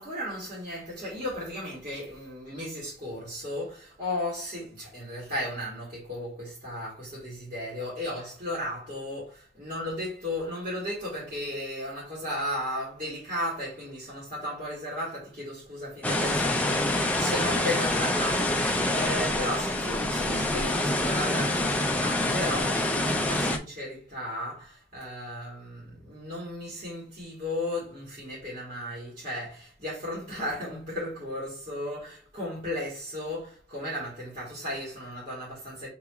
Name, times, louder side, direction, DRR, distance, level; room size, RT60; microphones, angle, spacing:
voice 1, 0.0-35.9, left 1 dB, 45° right, 2.0 m, -35 dB
sound 1, 16.0-23.6, left 1 dB, 10° left, 0.4 m, -26 dB
6.7 x 2.9 x 2.4 m
head